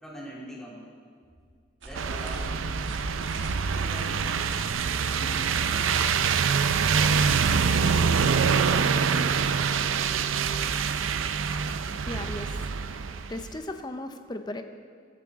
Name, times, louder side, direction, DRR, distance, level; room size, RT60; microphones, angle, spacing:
voice 1, 0.0-0.8 1.8-2.8 3.1-4.5 5.0-5.9, right 1 dB, 5° left, -6 dB, 2.9 m, -43 dB
sound 1, 1.8-10.3, right 2 dB, 65° right, 1.5 m, -43 dB
sound 2, 1.9-13.5, right 6 dB, 85° right, 0.5 m, -25 dB
voice 2, 12.0-14.6, left 1 dB, 20° left, 7 dB, 0.7 m, -38 dB
15.5 x 12.5 x 3.7 m, 2.1 s
head